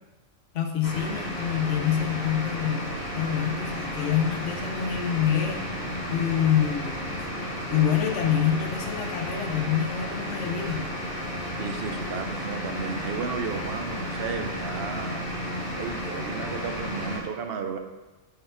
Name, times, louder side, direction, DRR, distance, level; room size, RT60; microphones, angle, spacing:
voice 1, 0.5-5.6 6.1-7.0 7.7-10.9, left 9 dB, 75° left, 3 dB, 1.2 m, -26 dB
sound 1, 0.8-17.2, equal, 50° left, 2.0 m, -33 dB
voice 2, 11.6-15.3 15.7-17.8, right 6 dB, 60° right, 6 dB, 0.9 m, -33 dB
9.1 x 4.5 x 3.9 m, 1.2 s
omnidirectional pair, 1.3 m